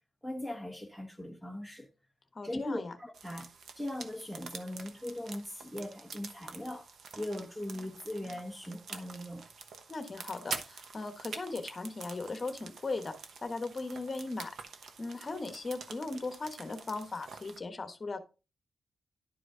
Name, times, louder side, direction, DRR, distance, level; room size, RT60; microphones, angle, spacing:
voice 1, 0.2-1.9 2.4-3.5 3.8-6.9 7.1-9.4, left 1 dB, 5° right, 1.0 m, -39 dB
voice 2, 2.3-2.9 9.9-13.1 13.4-14.6 15.0-18.2, left 3 dB, 30° left, 1.2 m, -38 dB
sound 1, 3.1-17.6, right 5 dB, 70° right, 1.1 m, -47 dB
11.0 x 4.9 x 3.8 m
wide cardioid pair, 130°, 0 cm